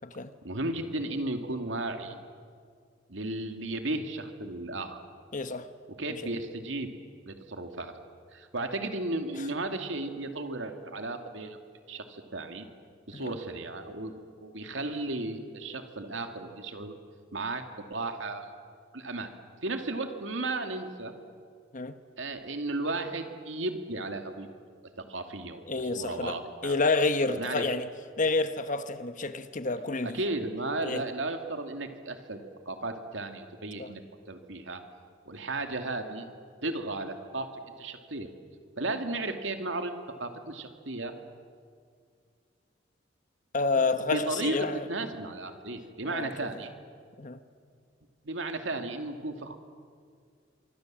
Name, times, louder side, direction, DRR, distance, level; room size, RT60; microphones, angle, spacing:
voice 1, 0.4-2.2 3.1-5.0 6.0-6.9 7.2-7.9 8.3-11.6 11.9-12.7 13.1-14.1 14.4-16.9 17.3-18.5 18.9-19.3 19.6-21.1 22.2-24.5 25.0-26.8 27.4-27.6 30.0-34.0 34.3-34.8 35.3-36.3 36.6-37.5 37.8-38.3 38.8-41.1 43.7-46.7 48.2-49.6, right 2 dB, 80° right, 2.5 m, -34 dB
voice 2, 5.3-5.7 6.1-6.2 13.1-13.4 21.7-22.0 25.7-27.9 28.2-30.2 30.8-31.0 33.8-33.9 43.5-44.8 46.1-46.3 47.2-47.4, left 3 dB, 45° left, 1.2 m, -29 dB
25.0 x 24.5 x 7.6 m
head